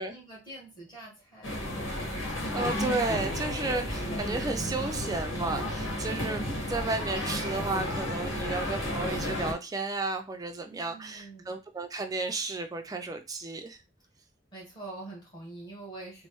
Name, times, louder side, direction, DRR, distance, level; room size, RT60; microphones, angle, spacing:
voice 1, 0.0-1.6 10.6-11.5 14.5-16.3, right 2 dB, 20° left, 1.3 m, -45 dB
sound 1, 1.4-9.5, left 1 dB, 70° left, 1.3 m, -32 dB
voice 2, 2.5-13.8, right 3 dB, 20° right, 0.3 m, -33 dB
4.2 x 2.0 x 3.0 m
head